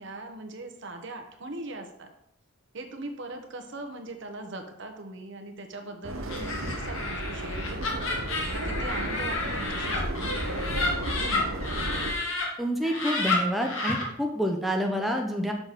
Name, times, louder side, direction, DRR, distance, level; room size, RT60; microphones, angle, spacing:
voice 1, 0.0-2.1 2.7-7.9 8.5-11.6, right 2 dB, 60° right, 4 dB, 1.0 m, -40 dB
Subway metro underground, 6.0-12.1, right 1 dB, 85° right, 0.9 m, -33 dB
Laughter, 6.3-12.4 12.8-14.0, left 3 dB, 70° left, 1.8 m, -31 dB
voice 2, 12.6-15.5, equal, ahead, 1 dB, 0.6 m, -28 dB
6.5 x 6.0 x 4.1 m, 0.76 s
head